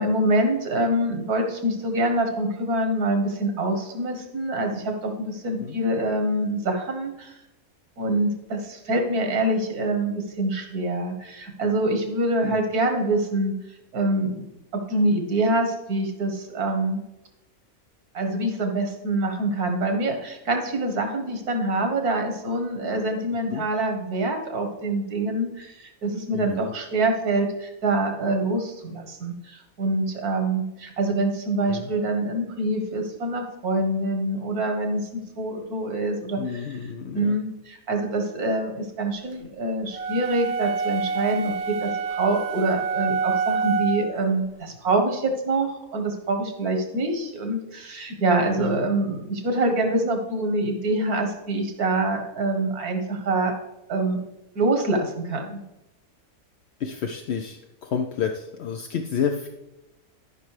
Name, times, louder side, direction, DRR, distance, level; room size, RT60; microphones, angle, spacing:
voice 1, 0.0-7.3 8.0-13.6 13.9-14.5 14.7-17.0 18.1-36.7 37.1-53.5 53.9-54.2 54.6-55.6, right 2 dB, 85° right, 4 dB, 1.8 m, -25 dB
voice 2, 26.3-26.7 31.7-31.9 36.4-37.4 48.6-48.9 56.8-59.5, left 7 dB, 65° left, 4 dB, 0.7 m, -30 dB
sound 1, 39.9-44.2, right 5 dB, 50° right, 1.0 m, -27 dB
13.0 x 5.5 x 3.3 m, 0.92 s
omnidirectional pair, 1.6 m